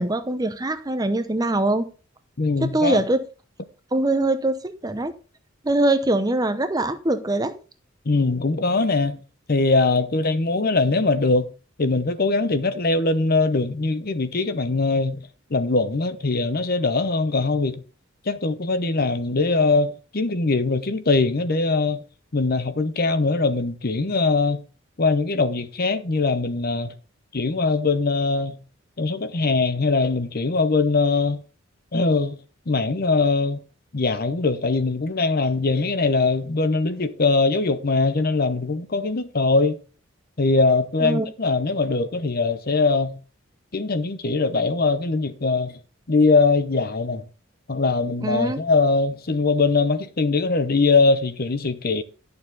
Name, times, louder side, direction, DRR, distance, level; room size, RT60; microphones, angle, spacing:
voice 1, 0.0-1.9 2.6-3.2 3.9-5.1 5.6-7.5 41.0-41.3 48.2-48.6, right 2 dB, 20° right, 0.7 m, -22 dB
voice 2, 2.4-3.0 8.1-9.2 9.5-11.5 11.8-15.2 15.5-17.8 18.3-22.0 22.3-24.6 25.0-26.9 27.3-28.6 29.0-31.4 31.9-32.4 32.7-33.6 33.9-39.8 40.4-43.2 43.7-45.7 46.1-47.2 47.7-52.0, left 3 dB, 45° left, 0.8 m, -21 dB
11.0 x 6.9 x 3.9 m
head